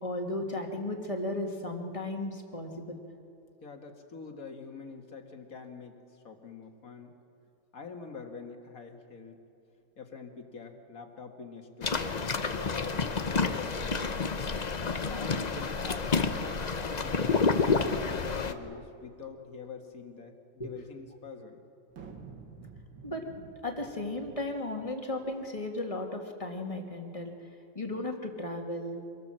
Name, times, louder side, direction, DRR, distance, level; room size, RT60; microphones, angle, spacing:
voice 1, 0.0-3.0 20.6-20.7 23.0-23.2 23.6-27.3 27.8-29.0, left 1 dB, 20° left, 2 dB, 1.8 m, -35 dB
voice 2, 3.6-7.2 7.7-9.4 10.0-12.1 12.5-14.1 14.8-16.1 16.4-21.6, left 4 dB, 45° left, 4 dB, 2.1 m, -45 dB
sound 1, 11.8-18.5, left 4 dB, 75° left, 0.4 m, -29 dB
sound 2, 21.9-25.5, right 5 dB, 75° right, 2.4 m, -50 dB
25.0 x 18.5 x 7.6 m, 2.6 s
omnidirectional pair, 2.1 m